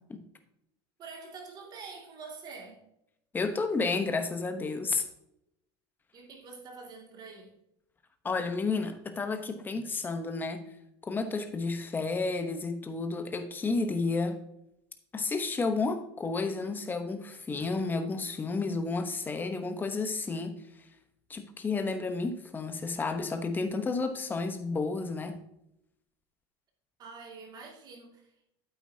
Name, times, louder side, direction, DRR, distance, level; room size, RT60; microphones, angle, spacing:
voice 1, 1.0-2.8 6.1-7.6 27.0-28.3, right 4 dB, 35° right, 2.3 m, -46 dB
voice 2, 3.3-5.0 8.2-10.6 11.1-14.4 15.1-20.5 21.3-25.4, left 3 dB, 15° left, 1.0 m, -31 dB
9.1 x 8.2 x 2.8 m
supercardioid pair, 145°, 12 cm